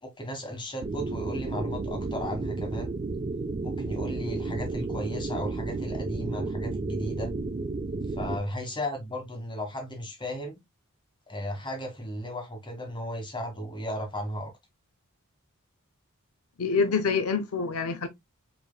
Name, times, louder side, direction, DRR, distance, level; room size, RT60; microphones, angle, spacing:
voice 1, 0.0-2.9 3.6-7.3 8.1-10.6 11.3-14.5, equal, 20° left, 1.5 m, -35 dB
sound 1, 0.8-8.4, right 3 dB, 30° right, 0.4 m, -32 dB
voice 2, 16.6-18.1, left 5 dB, 75° left, 0.6 m, -26 dB
5.2 x 3.3 x 2.2 m
head